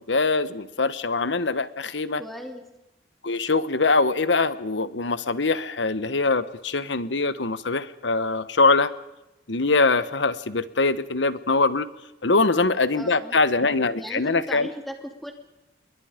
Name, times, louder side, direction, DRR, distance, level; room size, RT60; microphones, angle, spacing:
voice 1, 0.1-2.2 3.2-8.9 9.5-11.9 12.2-14.7, left 3 dB, 85° left, 14 dB, 1.2 m, -23 dB
voice 2, 2.2-2.6 12.9-13.4 14.0-15.3, equal, ahead, 3 dB, 3.0 m, -37 dB
28.5 x 22.5 x 5.2 m, 0.93 s
head